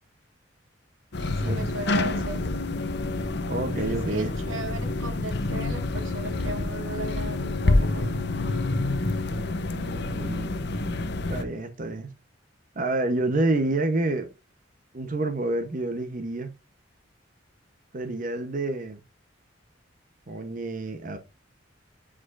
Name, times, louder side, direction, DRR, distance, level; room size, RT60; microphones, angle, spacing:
sound 1, 1.1-11.4, left 2 dB, 60° left, 0.8 m, -27 dB
voice 1, 1.2-2.4 3.9-9.0, right 1 dB, 85° right, 1.6 m, -37 dB
voice 2, 3.5-4.3 9.6-10.6 11.3-12.1 12.8-14.3 14.9-16.5 17.9-19.0 20.3-21.2, right 2 dB, 45° right, 0.8 m, -28 dB
8.5 x 4.9 x 2.4 m
head